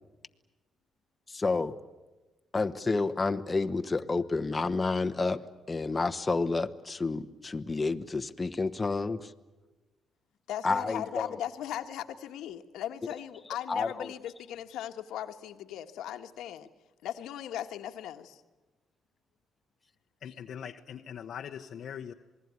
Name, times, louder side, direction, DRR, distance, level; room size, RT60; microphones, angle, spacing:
voice 1, 1.3-1.8 2.5-5.4 5.7-9.3 10.6-11.3 13.7-13.9, left 3 dB, 25° left, 7 dB, 1.1 m, -29 dB
voice 2, 10.5-16.7 17.0-18.4 20.2-20.4, left 11 dB, 85° left, 7 dB, 1.5 m, -38 dB
voice 3, 20.2-22.1, left 8 dB, 65° left, 3 dB, 1.0 m, -41 dB
27.5 x 20.5 x 9.5 m, 1.2 s
cardioid pair, 90°, 0 cm